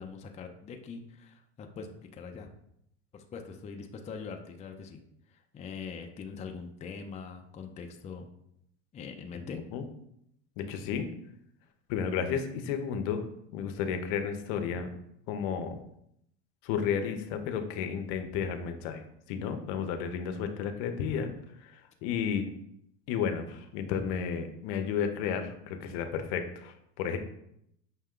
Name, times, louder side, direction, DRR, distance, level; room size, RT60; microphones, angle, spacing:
voice 1, 0.0-2.5 3.1-5.0 5.3-8.3 8.9-9.6, left 5 dB, 20° left, 4 dB, 0.4 m, -42 dB
voice 2, 10.6-11.1 11.9-13.2 13.5-14.9 15.3-15.8 16.6-19.0 19.3-21.3 21.6-22.5 23.1-27.2, left 7 dB, 70° left, 7 dB, 0.7 m, -32 dB
5.8 x 2.1 x 3.6 m, 0.75 s
supercardioid pair, 100°, 34 cm